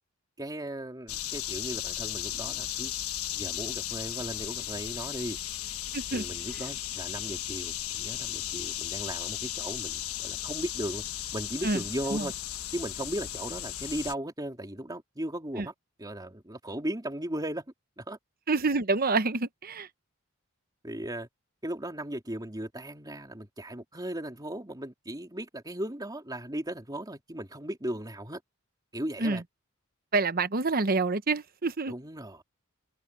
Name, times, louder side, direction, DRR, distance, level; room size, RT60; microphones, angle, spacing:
voice 1, 0.4-2.9 3.3-5.4 6.1-11.0 11.3-12.3 12.7-15.7 16.0-18.2 20.8-21.3 21.6-28.4 28.9-29.4 31.9-32.4, right 1 dB, 20° right, 3.1 m, -37 dB
sound 1, 1.1-14.1, left 12 dB, 90° left, 1.3 m, -35 dB
voice 2, 5.9-6.2 11.6-11.8 12.1-12.3 15.6-15.7 18.5-19.9 29.2-29.4 30.1-31.9, right 3 dB, 45° right, 1.0 m, -27 dB
head